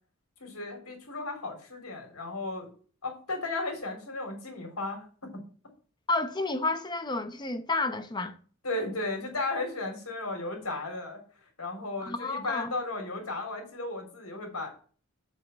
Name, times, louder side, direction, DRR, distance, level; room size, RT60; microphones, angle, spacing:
voice 1, 0.4-2.7 3.0-5.3 8.6-11.2 11.6-14.7, left 2 dB, 90° left, 3.7 m, -35 dB
voice 2, 6.1-8.3 12.0-12.7, left 2 dB, 20° left, 0.8 m, -30 dB
7.4 x 5.7 x 7.2 m
head